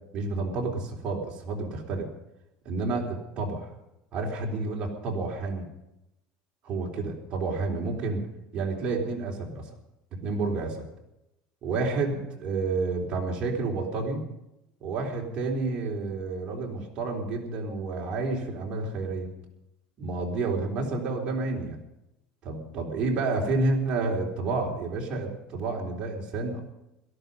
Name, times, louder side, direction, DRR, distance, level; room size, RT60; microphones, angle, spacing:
voice 1, 0.1-2.1 2.7-3.7 4.1-5.7 6.6-8.3 8.5-9.7 10.1-10.8 11.6-14.2 14.8-19.3 20.0-21.8 22.4-26.6, right 3 dB, 35° right, -1 dB, 3.8 m, -30 dB
17.5 x 14.5 x 5.4 m, 0.89 s
cardioid pair, 155°, 3 cm